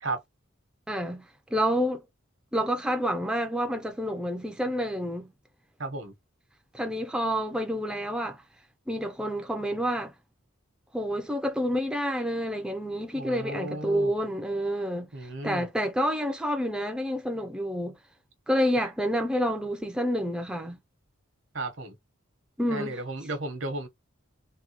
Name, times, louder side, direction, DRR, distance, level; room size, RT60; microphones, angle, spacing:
voice 1, 0.9-1.3 1.5-2.0 2.5-5.3 6.7-8.4 8.9-10.1 10.9-18.0 18.5-20.8 22.6-23.0, equal, 5° right, 0.4 m, -28 dB
voice 2, 5.8-6.1 13.1-14.1 15.1-15.7 18.8-18.9 21.5-21.9 22.7-23.9, right 2 dB, 65° right, 1.0 m, -34 dB
3.5 x 2.2 x 2.9 m
head